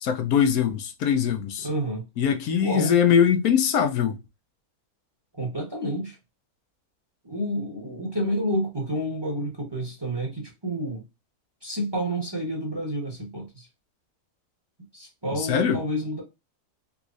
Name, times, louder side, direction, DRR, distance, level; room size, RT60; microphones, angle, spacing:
voice 1, 0.0-1.7 2.2-4.2 15.4-15.8, left 8 dB, 80° left, 1.1 m, -22 dB
voice 2, 1.6-2.0 2.6-2.9 5.3-6.2 7.2-11.0 11.6-13.7 14.9-16.2, equal, 20° right, 0.9 m, -29 dB
3.6 x 3.0 x 2.5 m
omnidirectional pair, 1.6 m